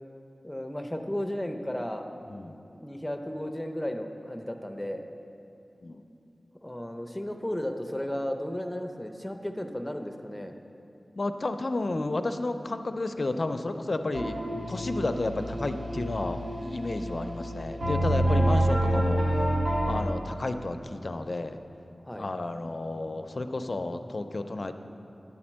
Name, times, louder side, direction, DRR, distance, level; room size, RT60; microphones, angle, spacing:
voice 1, 0.4-2.1 2.7-5.0 6.6-10.5 22.1-22.3, left 1 dB, 10° left, 5 dB, 0.7 m, -34 dB
voice 2, 2.3-2.6 5.8-6.0 11.2-14.4 14.7-19.2 19.9-21.6 22.1-24.7, left 2 dB, 55° left, 8 dB, 0.5 m, -32 dB
sound 1, 14.1-20.0, right 1 dB, 90° right, 1.3 m, -27 dB
10.5 x 4.3 x 7.3 m, 2.7 s
wide cardioid pair, 60°, 0 cm